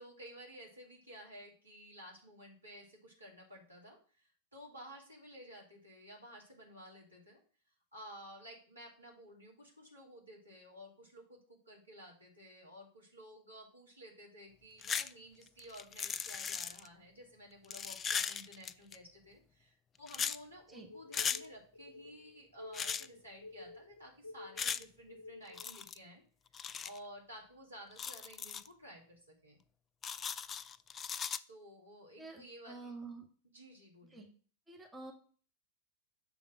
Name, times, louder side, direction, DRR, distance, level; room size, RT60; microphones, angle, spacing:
voice 1, 0.0-7.4 7.9-26.2 26.6-29.6 31.5-32.9 33.5-34.2, equal, 85° right, -2 dB, 2.4 m, -54 dB
sound 1, 14.8-15.1 15.4-16.9 17.6-19.0 20.1-20.4 21.1-21.4 22.7-23.1 24.6-24.8 25.5-26.0 26.5-27.0 27.9-28.7 30.0-31.4, left 7 dB, 25° left, 0.3 m, -38 dB
sound 2, 20.9-25.7, left 2 dB, 65° left, 0.9 m, -51 dB
voice 2, 32.2-33.2 34.1-34.3 34.7-35.1, right 3 dB, 10° right, 1 dB, 1.3 m, -48 dB
7.0 x 3.6 x 6.0 m, 0.41 s
figure-of-eight pair, 90°, 0 cm